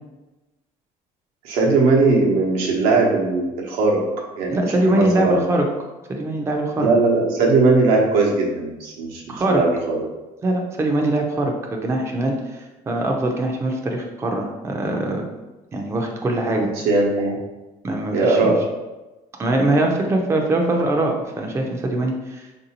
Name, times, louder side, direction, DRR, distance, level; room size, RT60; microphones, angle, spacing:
voice 1, 1.4-4.0 4.4-5.4 6.8-9.2 9.5-10.0 16.6-17.4 18.1-18.6, right 3 dB, 85° right, -2 dB, 0.8 m, -19 dB
voice 2, 4.5-5.6 6.1-6.9 9.3-9.6 10.4-15.2 15.7-16.7 17.8-18.4 19.4-22.5, right 1 dB, 20° right, 2 dB, 0.4 m, -22 dB
3.6 x 2.6 x 2.8 m, 1.1 s
cardioid pair, 120°, 15 cm